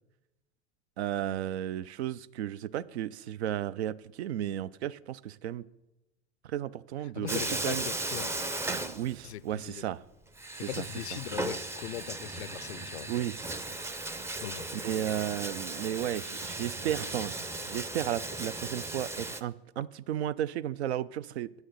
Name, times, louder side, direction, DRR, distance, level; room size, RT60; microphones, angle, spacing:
voice 1, 1.0-5.6 6.4-7.9 8.9-10.0 10.6-10.8 11.1-11.2 13.1-13.5 14.7-17.3 17.7-21.5, right 11 dB, 75° right, 0.5 m, -34 dB
voice 2, 7.2-8.5 9.2-9.8 10.6-13.1 14.4-14.6, left 12 dB, 80° left, 0.5 m, -39 dB
Bathtub (filling or washing), 7.3-9.6 9.8-9.9 10.4-19.4, right 2 dB, 10° right, 0.4 m, -36 dB
8.3 x 6.5 x 7.9 m
hypercardioid pair, 85°, 33 cm